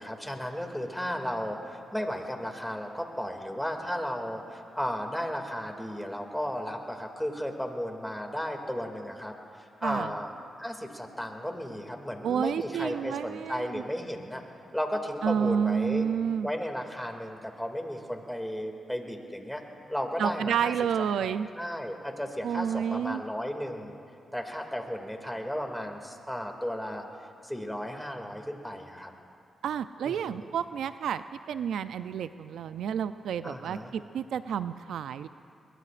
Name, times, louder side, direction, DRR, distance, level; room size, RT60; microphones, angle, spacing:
voice 1, 0.0-10.3 10.6-14.4 14.7-16.1 16.4-19.6 19.9-20.7 21.2-23.9 24.3-27.0 27.4-29.1 30.0-30.5 33.4-33.9, equal, 5° left, 3 dB, 2.3 m, -34 dB
voice 2, 12.2-13.8 15.2-16.5 20.2-21.5 22.4-23.2 29.6-35.3, right 8 dB, 85° right, 12 dB, 0.4 m, -30 dB
22.0 x 22.0 x 2.5 m, 2.4 s
cardioid pair, 60°, 0 cm